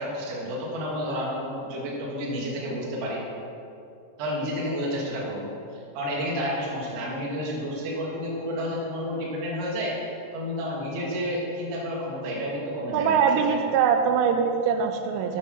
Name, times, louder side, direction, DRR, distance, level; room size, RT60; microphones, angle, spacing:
voice 1, 0.0-3.2 4.2-10.0 10.3-13.6, equal, 55° right, -4 dB, 2.7 m, -30 dB
voice 2, 12.9-15.4, right 7 dB, 85° right, 6 dB, 3.1 m, -22 dB
8.5 x 6.8 x 6.1 m, 2.6 s
omnidirectional pair, 5.6 m